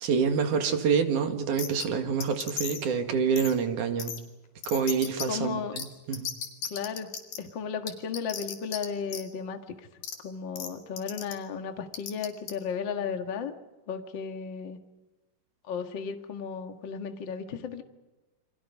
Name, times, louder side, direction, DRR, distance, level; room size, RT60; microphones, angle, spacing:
voice 1, 0.0-4.1 4.7-6.3, right 6 dB, 65° right, 6 dB, 3.4 m, -27 dB
Bird Chirps, 1.6-1.9 2.2-2.9 3.4-3.5 4.0-4.2 4.6-5.3 5.8-5.9 6.1-7.4 7.9-8.8 9.1-9.2 10.0-10.1 10.6-10.7 11.0-11.3 11.9-12.5, left 8 dB, 75° left, 4.1 m, -35 dB
voice 2, 5.3-5.8 6.7-9.6 10.2-13.5 13.9-14.8 15.6-17.8, left 6 dB, 40° left, 6 dB, 1.9 m, -34 dB
29.0 x 25.0 x 5.4 m, 1.1 s
omnidirectional pair, 4.0 m